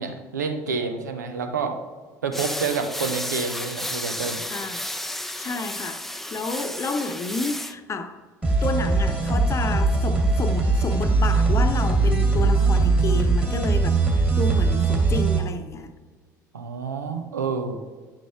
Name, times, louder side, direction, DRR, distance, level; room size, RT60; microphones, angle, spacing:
voice 1, 0.0-1.8 2.2-4.4 16.5-17.8, right 5 dB, 80° right, 5 dB, 0.7 m, -28 dB
sound 1, 2.3-7.7, left 1 dB, 5° left, 0.5 m, -32 dB
voice 2, 4.5-4.8 5.4-8.2 8.6-15.9, left 3 dB, 30° left, 8 dB, 0.9 m, -30 dB
sound 2, 8.4-15.4, right 3 dB, 15° right, 2.4 m, -20 dB
9.9 x 6.2 x 3.4 m, 1.5 s
figure-of-eight pair, 60°, 9 cm